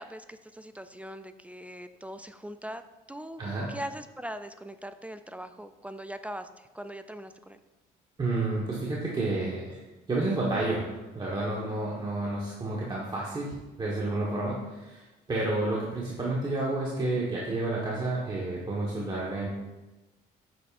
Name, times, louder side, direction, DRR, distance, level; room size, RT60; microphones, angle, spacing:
voice 1, 0.0-2.8 3.1-3.4 3.7-7.6, equal, 10° right, 10 dB, 0.3 m, -41 dB
voice 2, 3.4-3.7 8.2-9.8 10.1-10.9 11.1-19.5, right 2 dB, 25° right, -5 dB, 1.4 m, -30 dB
8.7 x 7.8 x 2.6 m, 1.1 s
cardioid pair, 110°, 17 cm